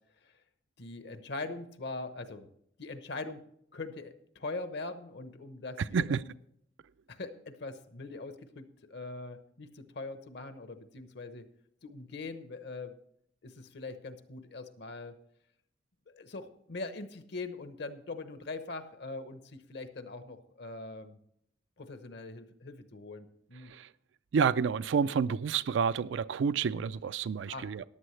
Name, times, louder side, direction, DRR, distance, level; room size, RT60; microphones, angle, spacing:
voice 1, 0.8-2.5 2.8-3.4 3.7-6.3 7.1-11.5 11.8-13.0 13.4-15.1 16.1-21.2 21.8-23.7 25.0-25.1 26.7-26.9 27.5-27.7, left 3 dB, 60° left, 0.9 m, -42 dB
voice 2, 24.3-27.8, right 6 dB, 65° right, 0.4 m, -29 dB
14.0 x 10.5 x 3.2 m
head